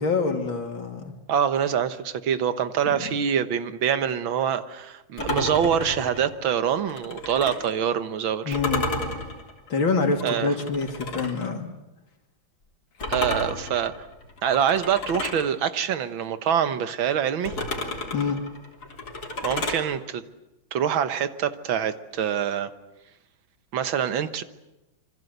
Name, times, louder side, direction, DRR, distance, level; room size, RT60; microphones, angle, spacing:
voice 1, 0.0-1.1 8.4-8.9 9.7-11.7 18.1-18.4, left 4 dB, 85° left, 5 dB, 3.4 m, -26 dB
voice 2, 1.3-8.6 10.2-10.6 13.1-14.1 14.4-17.6 19.4-20.2 20.7-22.7 23.7-24.4, right 8 dB, 85° right, 11 dB, 2.0 m, -25 dB
sound 1, 5.2-7.8 8.5-11.5 13.0-15.5 17.4-19.9, left 2 dB, 50° left, 3.8 m, -32 dB
27.0 x 24.5 x 8.1 m, 0.95 s
omnidirectional pair, 2.1 m